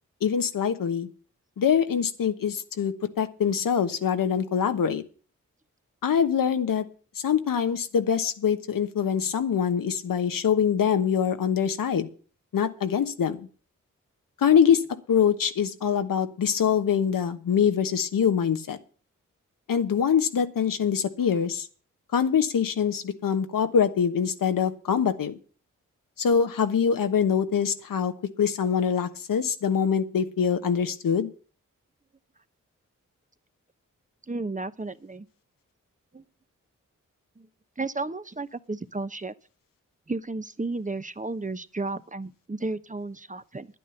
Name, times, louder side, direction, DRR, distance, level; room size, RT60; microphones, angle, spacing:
voice 1, 0.2-1.1 1.6-5.0 6.0-6.8 7.2-12.1 12.5-13.4 14.4-14.8 15.1-18.8 19.7-21.7 22.1-25.4 26.2-28.1 28.4-31.3, left 7 dB, 85° left, 1.2 m, -24 dB
voice 2, 34.3-35.3 36.1-36.2 37.4-37.5 37.8-39.3 40.1-43.7, right 3 dB, 25° right, 0.9 m, -33 dB
10.5 x 9.2 x 7.0 m
cardioid pair, 40°, 32 cm